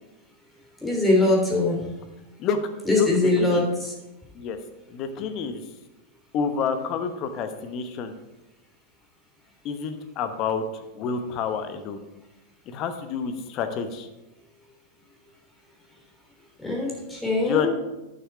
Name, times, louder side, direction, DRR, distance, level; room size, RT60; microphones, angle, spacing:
voice 1, 0.8-1.8 2.8-3.9 16.6-17.7, left 2 dB, 5° left, -2 dB, 3.2 m, -22 dB
voice 2, 2.9-3.6 4.3-4.6 4.9-5.6 6.3-8.1 9.6-10.6 10.9-12.0 12.7-14.1 17.4-17.7, left 6 dB, 40° left, 8 dB, 1.0 m, -28 dB
9.1 x 7.0 x 4.8 m, 1.0 s
figure-of-eight pair, 90°, 0 cm